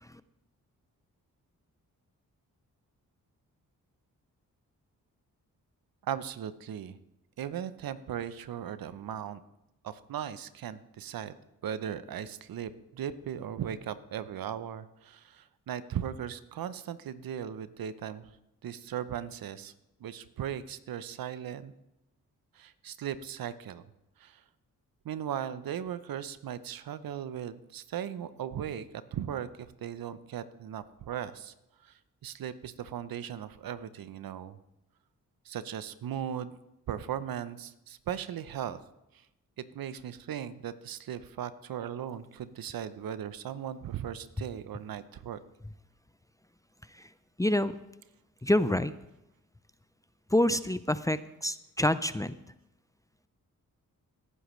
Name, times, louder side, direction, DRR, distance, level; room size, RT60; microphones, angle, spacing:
voice 1, 6.0-7.0 7.4-9.4 9.8-11.3 11.6-18.3 18.6-19.7 20.0-21.7 22.5-23.8 24.2-24.4 25.0-31.5 31.8-34.6 35.5-36.6 36.9-38.8 39.6-45.4, right 9 dB, 70° right, 14 dB, 0.7 m, -38 dB
voice 2, 47.4-47.7 48.4-48.9 50.3-52.3, left 1 dB, 10° left, 14 dB, 0.5 m, -27 dB
18.0 x 10.0 x 3.2 m, 0.88 s
supercardioid pair, 45°, 36 cm